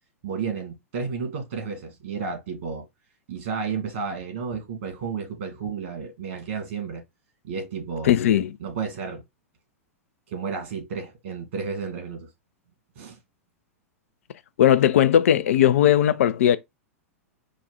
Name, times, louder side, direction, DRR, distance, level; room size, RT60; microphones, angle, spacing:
voice 1, 0.2-2.9 3.3-7.0 7.4-8.2 8.6-9.2 10.3-12.3 13.0-13.2, right 5 dB, 60° right, 2.7 m, -32 dB
voice 2, 8.0-8.6 14.6-16.6, left 10 dB, 65° left, 0.6 m, -18 dB
5.1 x 2.4 x 4.2 m
figure-of-eight pair, 100°, 8 cm